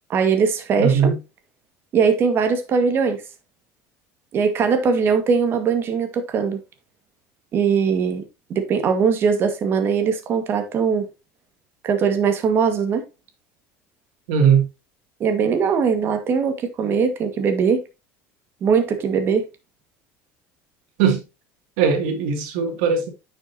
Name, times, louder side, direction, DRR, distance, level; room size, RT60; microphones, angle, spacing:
voice 1, 0.1-1.1 1.9-3.2 4.3-6.6 7.5-8.2 8.5-11.1 11.8-13.0 15.2-17.8 18.6-19.5, right 6 dB, 40° right, 1.9 m, -20 dB
voice 2, 0.8-1.2 14.3-14.7 21.0-21.2 21.8-23.1, right 6 dB, 80° right, 2.6 m, -19 dB
9.6 x 6.2 x 2.9 m
cardioid pair, 140°, 6 cm